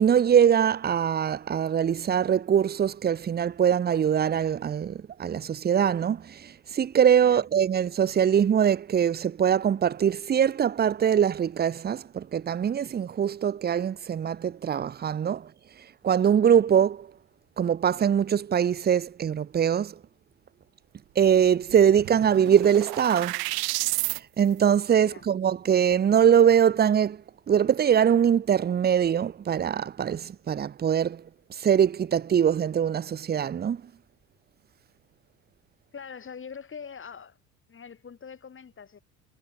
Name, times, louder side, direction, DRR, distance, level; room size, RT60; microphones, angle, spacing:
voice 1, 0.0-15.5 16.0-17.1 17.6-20.0 21.2-23.4 23.8-27.2 27.5-31.2 31.5-33.8, right 8 dB, 25° right, 0.8 m, -23 dB
sound 1, 21.3-21.4 21.7-24.2, right 23 dB, 60° right, 1.8 m, -31 dB
voice 2, 35.9-37.4 37.7-39.0, left 6 dB, 30° left, 4.2 m, -43 dB
hypercardioid pair, 75°, 40 cm